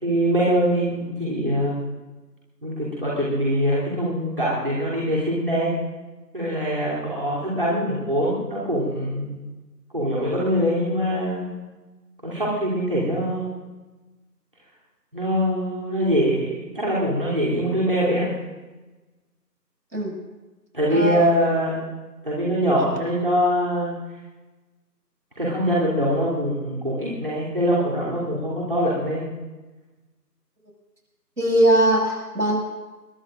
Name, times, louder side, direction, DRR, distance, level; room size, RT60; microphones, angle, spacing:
voice 1, 0.0-1.7 2.6-5.7 6.3-9.4 9.9-11.5 12.2-13.5 15.1-18.3 20.7-21.8 22.2-23.9 25.4-29.2, equal, 35° right, -7 dB, 3.2 m, -23 dB
voice 2, 20.9-21.5 31.4-32.6, right 1 dB, 70° right, -1 dB, 6.5 m, -21 dB
23.5 x 22.0 x 2.6 m, 1.2 s
figure-of-eight pair, 175°, 49 cm